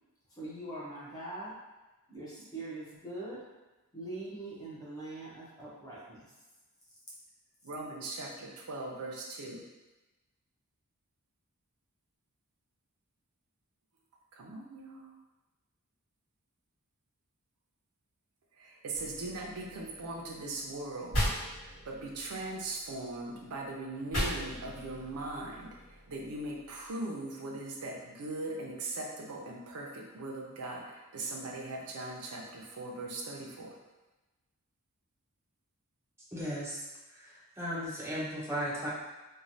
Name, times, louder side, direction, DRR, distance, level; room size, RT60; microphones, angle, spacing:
voice 1, 0.3-1.6 2.1-3.4 3.9-6.3, right 2 dB, 15° left, -8 dB, 0.8 m, -42 dB
voice 2, 7.6-9.6 14.3-15.1 18.6-21.2 21.6-25.8 26.1-33.8, right 2 dB, 75° right, 0 dB, 0.5 m, -40 dB
sound 1, 18.9-20.8 21.1-23.4 24.1-26.9, equal, 60° left, 1.5 m, -38 dB
voice 3, 36.3-36.8 37.1-38.9, equal, 10° right, -6 dB, 0.6 m, -36 dB
3.1 x 2.2 x 2.7 m, 1.1 s
head